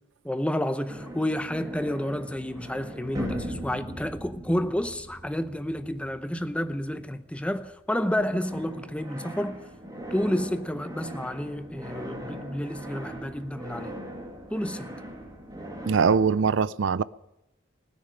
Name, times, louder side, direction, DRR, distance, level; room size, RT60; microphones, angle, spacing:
voice 1, 0.2-9.6 10.1-13.9 14.5-15.0, left 1 dB, 5° left, 0.7 m, -30 dB
sound 1, 0.9-7.8 8.2-16.5, equal, 20° right, 2.5 m, -40 dB
voice 2, 15.9-17.0, right 5 dB, 75° right, 0.5 m, -22 dB
16.5 x 9.8 x 8.9 m
head